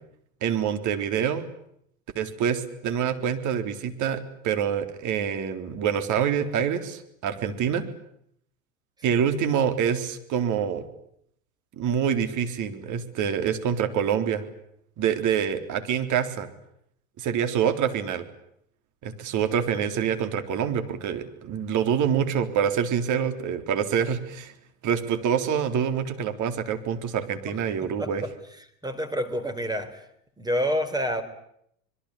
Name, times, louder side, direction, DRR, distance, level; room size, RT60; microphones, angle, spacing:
voice 1, 0.4-1.5 2.2-7.9 9.0-10.8 11.8-14.4 15.0-16.5 17.2-18.2 19.0-24.5 24.8-28.2, right 8 dB, 45° right, 8 dB, 3.8 m, -26 dB
voice 2, 27.8-28.1 28.8-30.1 30.4-31.2, equal, 10° right, 10 dB, 4.3 m, -28 dB
26.0 x 22.5 x 10.0 m, 0.73 s
hypercardioid pair, 80°, 42 cm